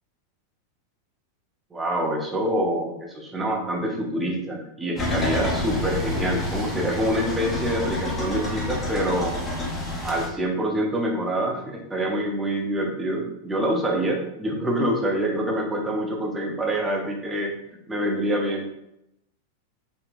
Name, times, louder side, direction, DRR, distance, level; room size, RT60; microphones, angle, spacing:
voice 1, 1.7-9.3 10.0-17.5 17.9-18.6, right 1 dB, 10° right, 0 dB, 0.7 m, -26 dB
sound 1, 5.0-10.3, left 2 dB, 15° left, 0.9 m, -28 dB
3.6 x 2.2 x 2.5 m, 0.82 s
figure-of-eight pair, 90°, 0 cm